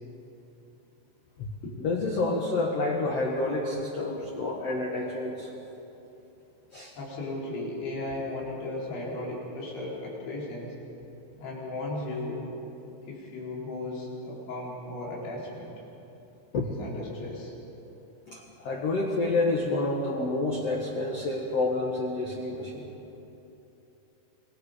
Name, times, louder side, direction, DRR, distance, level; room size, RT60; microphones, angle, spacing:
voice 1, 1.8-5.5 6.7-6.9 16.5-16.7 18.3-22.9, left 2 dB, 60° left, -1 dB, 1.7 m, -29 dB
voice 2, 7.0-10.7 11.3-12.5 13.0-15.7 16.8-17.5, left 2 dB, 90° left, -5 dB, 6.6 m, -36 dB
26.5 x 21.5 x 5.1 m, 2.9 s
omnidirectional pair, 5.2 m